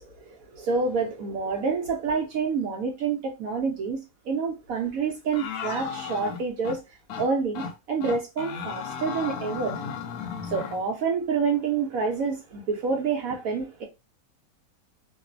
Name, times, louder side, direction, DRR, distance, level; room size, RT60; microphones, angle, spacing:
voice 1, 0.0-6.8 7.2-9.8 10.4-13.9, right 5 dB, 70° right, 0.8 m, -28 dB
sound 1, 5.3-6.8 7.1-7.3 7.5-7.7 8.0-10.8, left 6 dB, 70° left, 0.9 m, -34 dB
3.0 x 2.0 x 2.4 m
omnidirectional pair, 1.9 m